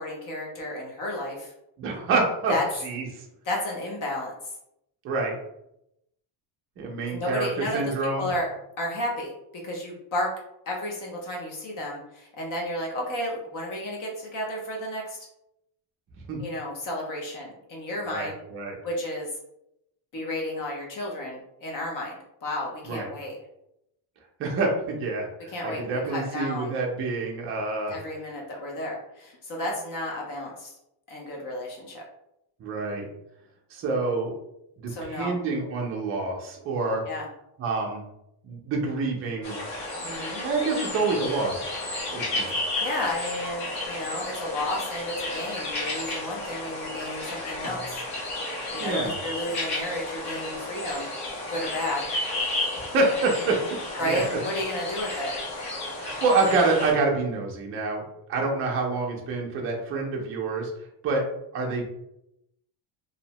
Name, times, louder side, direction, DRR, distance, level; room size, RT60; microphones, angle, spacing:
voice 1, 0.0-1.5 2.5-2.6 3.5-4.3 7.1-8.5 8.8-9.3 9.6-10.3 10.7-15.2 16.4-18.4 18.8-19.3 20.1-23.4 25.5-26.7 27.9-30.7 31.1-32.0 34.9-35.3 37.1-37.3 40.0-40.4 42.8-48.0 48.7-51.1 51.5-52.0 54.0-55.4, left 1 dB, 45° left, -2 dB, 0.6 m, -32 dB
voice 2, 1.8-2.5 2.8-3.1 5.0-5.3 6.8-8.3 16.3-16.4 18.1-18.8 22.9-23.1 24.4-27.9 32.6-33.1 33.7-34.3 34.8-37.0 37.6-38.0 38.4-39.6 40.4-41.6 42.1-42.5 48.8-49.2 52.7-53.6 54.0-54.4 56.0-58.0 58.3-60.7 61.0-61.3 61.5-61.9, right 3 dB, 30° right, -1 dB, 0.4 m, -27 dB
sound 1, 39.4-56.9, left 2 dB, 75° left, 1.2 m, -32 dB
2.7 x 2.0 x 2.8 m, 0.81 s
cardioid pair, 180°, 46 cm